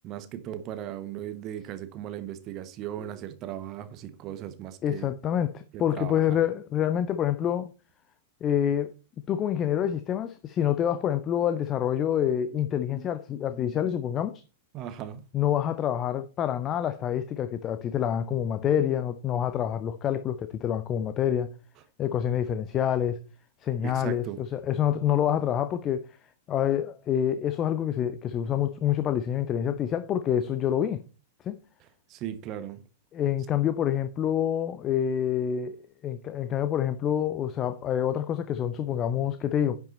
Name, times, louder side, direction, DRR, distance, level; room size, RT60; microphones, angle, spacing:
voice 1, 0.0-5.1 5.7-6.4 14.7-15.2 23.8-24.4 32.1-32.8, right 11 dB, 35° right, 1.1 m, -37 dB
voice 2, 4.8-7.7 8.4-8.9 9.3-14.4 15.3-21.5 22.0-23.2 23.6-26.1 26.5-31.0 31.4-31.6 33.1-39.8, left 10 dB, 30° left, 0.7 m, -27 dB
10.5 x 6.0 x 4.2 m
figure-of-eight pair, 95°, 0 cm